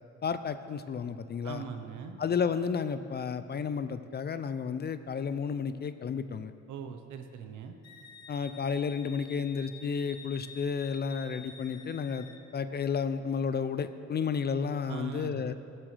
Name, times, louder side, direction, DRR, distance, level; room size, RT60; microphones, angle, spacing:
voice 1, 0.2-1.6 2.2-6.5 8.3-12.3 12.5-15.5, left 6 dB, 35° left, 12 dB, 0.4 m, -32 dB
voice 2, 1.4-2.2 6.7-7.7 14.9-15.5, right 6 dB, 80° right, 7 dB, 0.9 m, -40 dB
Wind instrument woodwind instrument, 7.8-12.4, left 4 dB, 60° left, 1.1 m, -50 dB
17.5 x 7.5 x 3.3 m, 2.5 s
cardioid pair, 90°, 30 cm